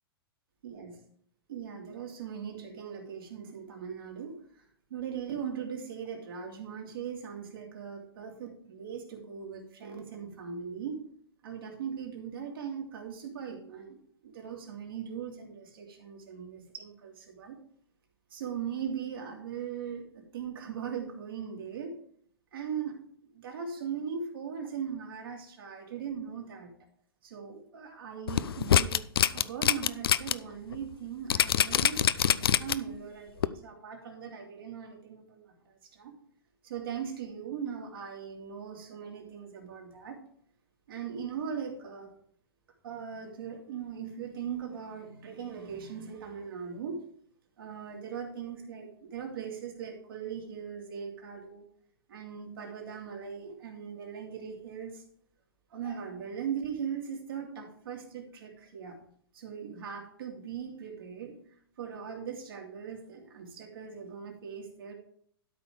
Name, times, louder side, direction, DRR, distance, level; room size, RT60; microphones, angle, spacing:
voice 1, 1.5-11.0 11.4-17.6 18.3-22.0 22.5-23.0 23.3-26.7 27.2-29.0 29.3-36.1 36.6-40.2 40.9-42.1 42.8-47.0 47.6-51.6 52.1-55.0 55.7-59.0 59.3-61.3 61.8-64.9, right 7 dB, 65° right, 1 dB, 3.0 m, -39 dB
sound 1, 28.3-30.3 30.7-30.8 31.3-33.0 33.4-33.5, left 9 dB, 70° left, 0.6 m, -24 dB
12.5 x 5.5 x 5.0 m, 0.63 s
figure-of-eight pair, 110°, 13 cm